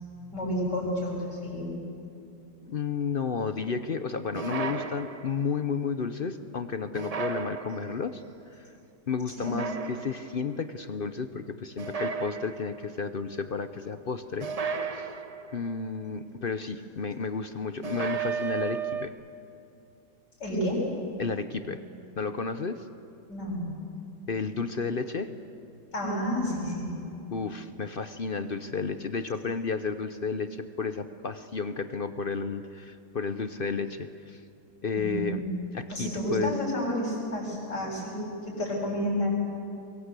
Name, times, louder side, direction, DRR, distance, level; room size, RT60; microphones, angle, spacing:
voice 1, 0.3-1.7 9.3-9.5 20.4-20.8 23.3-23.7 25.9-26.9 35.0-35.5 35.9-39.3, equal, 75° left, -5 dB, 7.9 m, -30 dB
voice 2, 2.6-8.2 8.6-8.7 9.1-14.5 14.8-15.1 15.5-19.1 21.2-21.8 22.2-22.8 24.3-25.3 27.3-34.4 34.8-35.4 35.7-36.5, left 5 dB, 50° left, 10 dB, 0.6 m, -32 dB
sound 1, 4.3-5.6 6.9-8.1 9.4-10.4 11.8-12.9 14.4-15.7 17.8-19.1, right 6 dB, 40° right, 0.5 m, -34 dB
24.0 x 22.0 x 8.3 m, 2.6 s
omnidirectional pair, 1.8 m